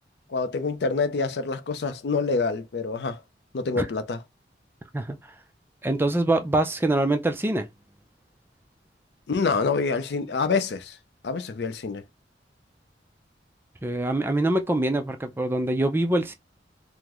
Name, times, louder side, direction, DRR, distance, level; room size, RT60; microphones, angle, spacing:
voice 1, 0.3-3.2 3.5-4.2 9.3-11.0 11.2-12.0, left 4 dB, 65° left, 0.5 m, -26 dB
voice 2, 5.8-7.7 13.8-16.3, right 1 dB, 10° right, 0.3 m, -24 dB
3.7 x 2.0 x 2.9 m
head